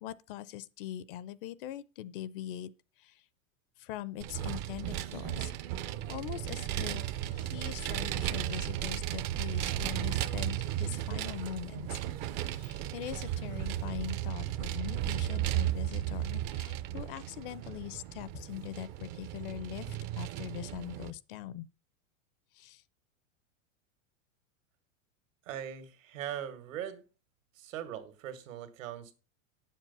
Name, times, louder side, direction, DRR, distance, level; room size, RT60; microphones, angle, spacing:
voice 1, 0.0-2.7 3.0-3.2 3.8-5.5 6.1-12.0 12.4-21.7 22.5-22.8, left 12 dB, 45° left, 0.5 m, -42 dB
Vehicle, 4.2-21.1, right 12 dB, 35° right, 0.6 m, -35 dB
voice 2, 25.4-27.0 27.5-29.1, right 10 dB, 75° right, 2.2 m, -40 dB
9.5 x 7.4 x 5.4 m
supercardioid pair, 155°, 40 cm